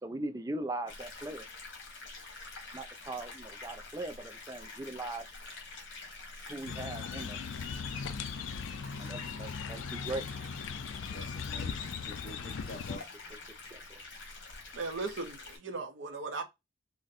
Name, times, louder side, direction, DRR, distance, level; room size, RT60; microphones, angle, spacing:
voice 1, 0.0-1.5 2.7-5.3 6.5-7.4 9.0-10.3 13.7-14.0, right 2 dB, 15° right, 0.3 m, -40 dB
sound 1, 0.9-15.6, left 3 dB, 70° left, 1.4 m, -47 dB
sound 2, 6.7-13.0, left 6 dB, 85° left, 0.4 m, -39 dB
voice 2, 11.0-13.1, left 1 dB, 45° left, 0.8 m, -48 dB
voice 3, 14.7-16.4, right 3 dB, 75° right, 0.6 m, -37 dB
4.0 x 2.1 x 2.4 m
head